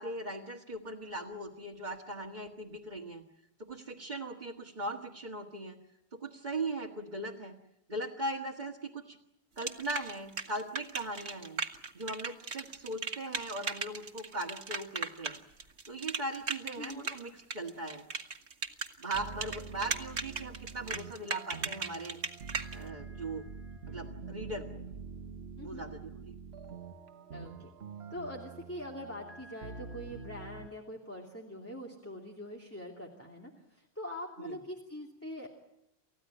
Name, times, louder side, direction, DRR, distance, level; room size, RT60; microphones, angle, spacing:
voice 1, 0.0-3.2 3.6-5.8 6.1-7.6 7.9-9.2 9.6-11.6 11.9-15.4 15.9-18.1 19.0-22.2 22.7-23.5 23.9-24.8 25.6-26.4 34.4-34.6, right 2 dB, 45° right, -2 dB, 1.9 m, -39 dB
sound 1, 9.6-22.8, right 4 dB, 90° right, 1.9 m, -37 dB
voice 2, 16.8-17.1 25.6-25.9 27.3-27.7 28.1-35.5, left 1 dB, 10° left, -1 dB, 2.8 m, -43 dB
sound 2, 19.1-30.7, right 5 dB, 75° right, 1.4 m, -46 dB
29.0 x 15.0 x 9.9 m, 0.85 s
omnidirectional pair, 1.1 m